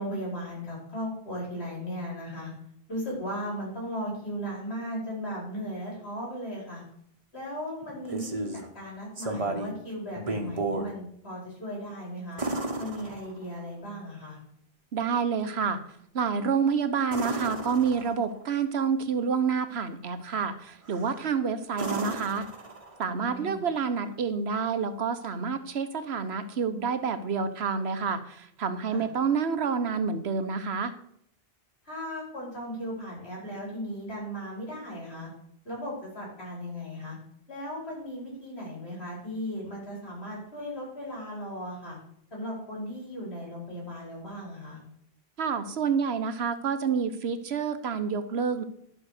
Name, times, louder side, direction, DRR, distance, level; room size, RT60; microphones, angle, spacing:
voice 1, 0.0-2.5 2.9-6.8 7.3-8.5 8.7-12.4 12.8-14.4 23.1-23.6 28.9-29.1 31.8-35.3 35.6-37.1 37.5-42.0 42.3-44.8, equal, 85° left, -4 dB, 5.1 m, -36 dB
sound 1, 7.8-8.7 9.2-9.8 10.2-10.9 12.4-13.6 17.1-18.4 20.8-21.2 21.7-23.1 25.2-25.3, right 2 dB, 35° right, 1.2 m, -33 dB
voice 2, 14.9-15.8 16.1-22.5 23.0-30.9 45.4-48.6, right 6 dB, 85° right, 10 dB, 1.2 m, -28 dB
12.0 x 5.9 x 6.6 m, 0.69 s
omnidirectional pair, 1.0 m